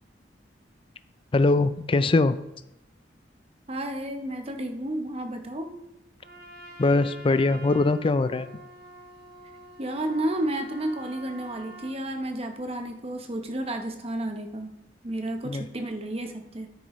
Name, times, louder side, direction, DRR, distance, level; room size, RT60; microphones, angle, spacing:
voice 1, 1.3-2.4 6.8-8.5 15.5-15.7, left 3 dB, 30° left, 13 dB, 0.4 m, -22 dB
voice 2, 3.7-5.8 9.8-14.7 15.0-16.7, right 1 dB, 35° right, 5 dB, 0.9 m, -31 dB
Trumpet, 6.2-12.0, right 1 dB, 55° right, 1.5 m, -46 dB
10.0 x 9.2 x 3.1 m, 0.89 s
head